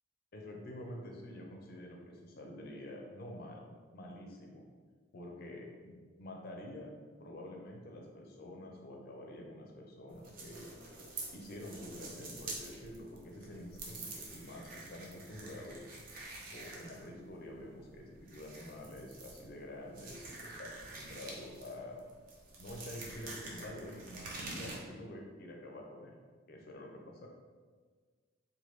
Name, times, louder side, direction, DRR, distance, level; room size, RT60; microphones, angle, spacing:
voice 1, 0.3-3.7 3.9-4.6 5.1-6.9 7.2-10.7 11.3-15.8 16.5-22.0 22.6-26.2 26.5-27.3, left 1 dB, 45° left, 0 dB, 0.4 m, -48 dB
sound 1, 10.1-24.8, right 2 dB, 45° right, 0.5 m, -47 dB
3.0 x 2.2 x 3.1 m, 1.5 s
head